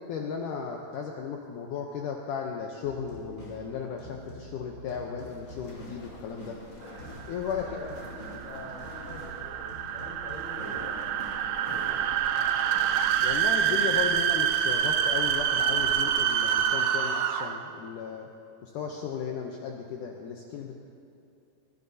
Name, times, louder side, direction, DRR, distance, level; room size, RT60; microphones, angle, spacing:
voice 1, 0.0-6.6 7.3-7.7 13.2-18.3 18.6-20.7, left 6 dB, 75° left, 1 dB, 2.0 m, -35 dB
sound 1, 2.8-11.9, right 2 dB, 20° left, 3.6 m, -47 dB
sound 2, 5.2-16.6, left 1 dB, 45° left, 3.2 m, -47 dB
sound 3, 7.1-17.7, right 9 dB, 80° right, 2.1 m, -27 dB
voice 2, 7.4-12.8, left 1 dB, 10° right, -4 dB, 2.1 m, -45 dB
21.5 x 16.0 x 2.8 m, 2.7 s
omnidirectional pair, 4.4 m